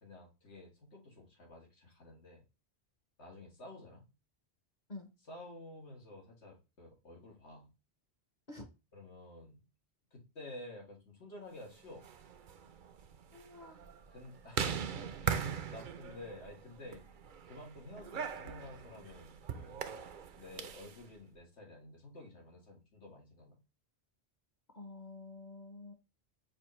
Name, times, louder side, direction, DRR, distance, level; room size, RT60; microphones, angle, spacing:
voice 1, 0.0-2.4 3.2-4.1 5.3-7.7 8.9-9.5 10.1-12.1 14.1-14.8 15.2-17.0 17.5-19.8 20.3-23.6, left 1 dB, 90° left, 0 dB, 1.8 m, -51 dB
sound 1, 11.9-21.0, right 7 dB, 60° right, 0.6 m, -40 dB
voice 2, 13.3-13.8 24.7-25.9, left 2 dB, 45° left, 4 dB, 0.8 m, -48 dB
5.3 x 2.5 x 3.0 m, 0.28 s
omnidirectional pair, 1.1 m